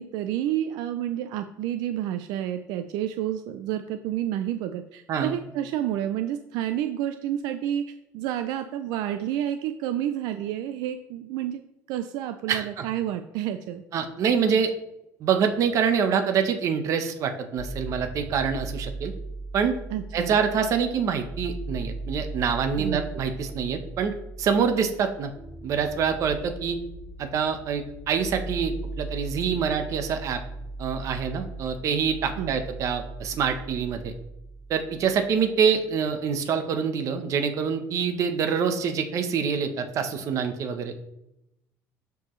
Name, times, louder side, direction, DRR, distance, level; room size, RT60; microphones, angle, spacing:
voice 1, 0.0-11.6 11.9-13.8 19.9-20.4 22.7-23.1 32.3-32.6, right 11 dB, 80° right, 9 dB, 0.5 m, -30 dB
voice 2, 12.5-12.9 13.9-14.7 15.2-19.1 19.5-19.8 20.1-25.3 25.6-26.8 27.2-30.4 30.8-34.1 34.7-40.9, right 6 dB, 50° right, 7 dB, 1.0 m, -26 dB
sound 1, 17.6-35.5, right 2 dB, 15° right, 2.8 m, -38 dB
12.5 x 4.7 x 3.2 m, 0.86 s
cardioid pair, 135°, 7 cm